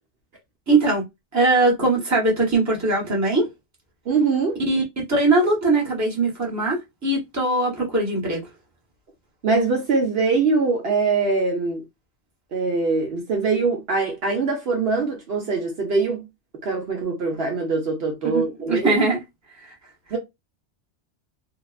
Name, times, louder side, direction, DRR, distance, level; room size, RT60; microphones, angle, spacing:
voice 1, 0.7-1.0 1.3-3.5 4.7-8.5 18.2-18.4 18.7-19.2 19.6-19.7, right 2 dB, 15° right, 0.9 m, -21 dB
voice 2, 4.1-4.6 9.4-11.8 12.5-16.3 16.6-18.9 20.1-20.2, right 4 dB, 60° right, 0.9 m, -23 dB
2.8 x 2.1 x 2.3 m
omnidirectional pair, 1.2 m